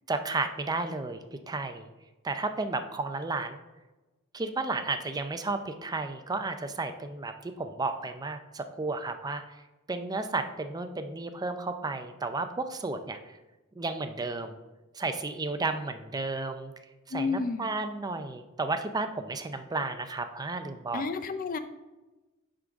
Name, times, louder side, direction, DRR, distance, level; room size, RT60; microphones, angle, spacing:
voice 1, 0.1-1.9 2.2-3.6 4.3-9.6 9.9-13.4 13.8-14.6 14.9-16.7 17.1-21.1, right 3 dB, 20° right, 8 dB, 0.4 m, -33 dB
voice 2, 17.1-17.7 20.9-21.6, left 4 dB, 40° left, 10 dB, 0.5 m, -31 dB
10.5 x 3.8 x 3.6 m, 1.1 s
head